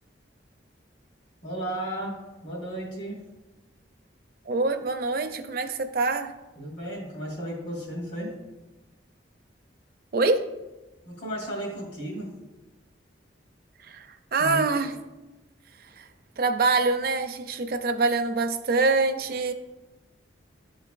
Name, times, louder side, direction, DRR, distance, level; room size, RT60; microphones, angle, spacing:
voice 1, 1.4-2.2 2.4-3.2 6.6-8.3 11.0-12.3 14.4-14.6, right 1 dB, 65° left, -2 dB, 2.1 m, -34 dB
voice 2, 4.5-6.3 10.1-10.4 13.8-14.1 14.3-15.0 16.0-16.1 16.4-19.5, right 3 dB, 55° right, 8 dB, 0.5 m, -25 dB
11.0 x 3.9 x 2.5 m, 1.1 s
head